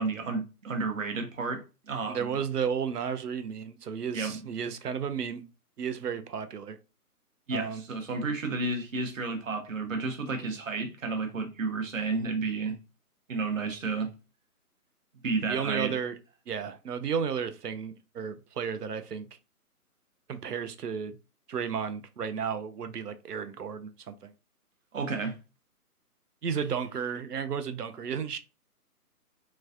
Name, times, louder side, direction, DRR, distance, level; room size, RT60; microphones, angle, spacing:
voice 1, 0.0-2.4 4.1-4.4 7.5-12.8 13.3-14.1 15.2-16.0 24.9-25.4, right 3 dB, 55° right, 1.0 m, -31 dB
voice 2, 2.1-5.4 5.8-6.8 7.5-7.8 15.5-16.2 16.5-19.2 20.3-21.2 21.5-24.3 26.4-28.4, right 7 dB, 80° right, 0.7 m, -33 dB
3.3 x 3.1 x 2.5 m
figure-of-eight pair, 155°, 46 cm